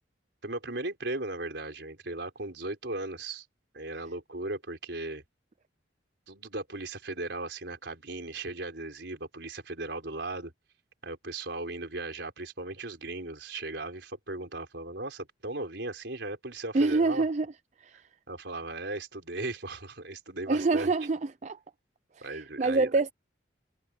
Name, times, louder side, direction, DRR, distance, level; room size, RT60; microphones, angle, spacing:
voice 1, 0.4-3.5 3.7-5.2 6.3-10.5 11.0-17.2 18.3-20.9 22.2-22.9, right 2 dB, 65° right, 4.5 m, -37 dB
voice 2, 16.7-17.5 17.8-18.0 20.5-21.6 22.2-23.1, right 3 dB, 40° right, 0.4 m, -26 dB
head